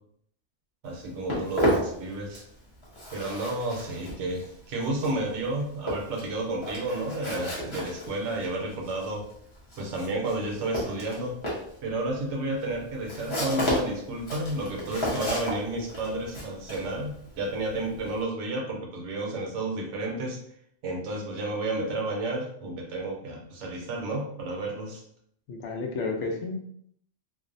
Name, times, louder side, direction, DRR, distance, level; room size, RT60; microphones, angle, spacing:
Walk footsteps, 0.8-2.6 2.8-18.2, equal, 30° left, 0.7 m, -33 dB
voice 1, 0.8-2.4 3.1-9.2 9.8-11.4 11.8-20.4 20.8-25.0, right 2 dB, 75° right, 0 dB, 1.0 m, -31 dB
voice 2, 25.5-26.5, left 3 dB, 75° left, 1 dB, 0.9 m, -31 dB
2.5 x 2.1 x 2.5 m, 0.68 s
omnidirectional pair, 1.2 m